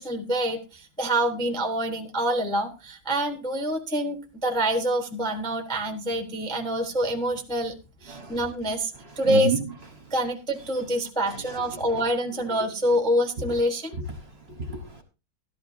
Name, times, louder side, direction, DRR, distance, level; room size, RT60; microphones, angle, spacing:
voice 1, 0.0-7.7 8.0-8.9 9.2-9.5 10.1-13.9, equal, 5° left, 0.7 m, -26 dB
voice 2, 8.1-8.4 9.2-9.6 11.2-11.6 11.9-12.0 13.4-13.5 13.9-15.0, right 5 dB, 40° right, 1.1 m, -31 dB
13.5 x 12.5 x 2.7 m
omnidirectional pair, 2.2 m